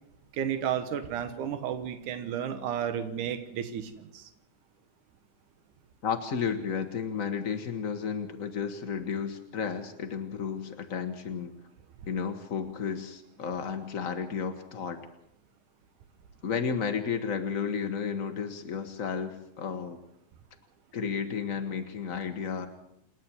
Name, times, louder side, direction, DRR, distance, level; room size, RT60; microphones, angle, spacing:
voice 1, 0.3-4.3 21.0-21.1, right 9 dB, 85° right, 9 dB, 2.8 m, -32 dB
voice 2, 6.0-11.5 12.1-15.0 16.4-20.0 20.9-22.7, left 6 dB, 60° left, 6 dB, 0.8 m, -32 dB
28.0 x 10.5 x 9.6 m, 0.81 s
omnidirectional pair, 3.5 m